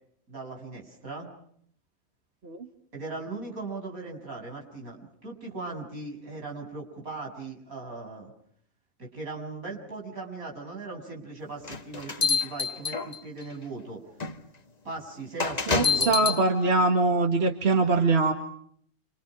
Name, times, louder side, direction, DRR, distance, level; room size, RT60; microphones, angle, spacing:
voice 1, 0.3-1.3 2.9-8.3 9.0-14.0 14.8-16.4, right 3 dB, 75° right, -1 dB, 7.7 m, -38 dB
sound 1, 11.6-13.4 14.2-14.3 15.4-16.4, left 5 dB, 30° left, 1.4 m, -26 dB
voice 2, 15.7-18.3, right 3 dB, 45° right, 4 dB, 2.1 m, -23 dB
29.0 x 28.0 x 6.1 m, 0.66 s
omnidirectional pair, 1.5 m